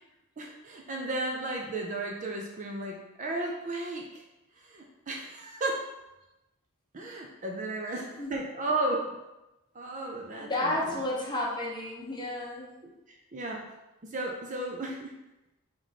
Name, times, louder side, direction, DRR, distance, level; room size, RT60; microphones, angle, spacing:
voice 1, 0.4-4.2 4.6-5.9 6.9-9.1 9.7-11.0 13.1-13.7 14.0-15.1, right 2 dB, 35° right, 0 dB, 0.5 m, -34 dB
voice 2, 7.9-8.3 10.4-12.7, left 1 dB, 20° left, -4 dB, 0.8 m, -32 dB
3.7 x 3.1 x 4.1 m, 0.97 s
head